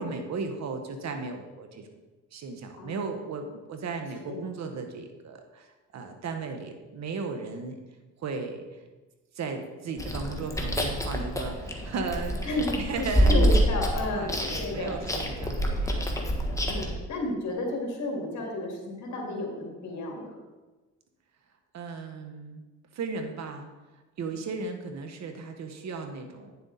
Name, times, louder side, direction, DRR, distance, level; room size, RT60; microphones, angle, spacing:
voice 1, 0.0-1.9 2.3-7.8 8.2-8.6 9.3-13.5 14.1-16.1 21.7-22.7 22.9-23.7 24.2-26.5, right 4 dB, 65° right, 5 dB, 1.4 m, -36 dB
Chewing mastication, 10.0-16.9, equal, 10° left, 1.5 m, -27 dB
voice 2, 12.4-15.0 16.7-20.4, left 1 dB, 65° left, 0 dB, 2.5 m, -32 dB
9.7 x 7.1 x 4.1 m, 1.2 s
cardioid pair, 90°, 30 cm